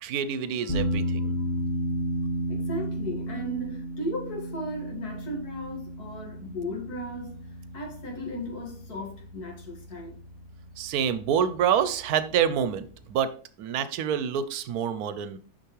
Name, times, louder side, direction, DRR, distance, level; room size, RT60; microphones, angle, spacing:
voice 1, 0.0-1.4 10.8-13.3 13.6-15.4, right 8 dB, 75° right, 1.1 m, -27 dB
voice 2, 0.6-1.4 2.5-10.2, equal, 75° left, 2.2 m, -36 dB
sound 1, 0.7-13.2, equal, 25° left, 1.3 m, -34 dB
6.7 x 5.8 x 3.1 m
omnidirectional pair, 1.7 m